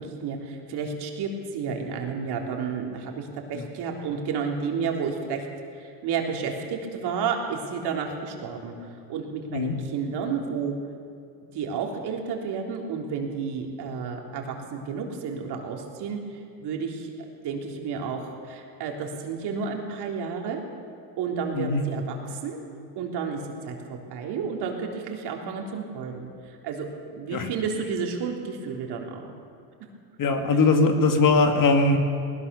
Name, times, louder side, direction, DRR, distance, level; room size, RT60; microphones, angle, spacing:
voice 1, 0.0-5.5 5.7-10.8 11.5-20.6 21.2-22.6 23.0-29.3, right 5 dB, 60° right, 1 dB, 3.7 m, -31 dB
voice 2, 21.5-21.8 27.3-27.5 30.2-32.0, left 3 dB, 45° left, 5 dB, 2.6 m, -21 dB
20.0 x 19.0 x 7.0 m, 2.4 s
supercardioid pair, 100°, 45 cm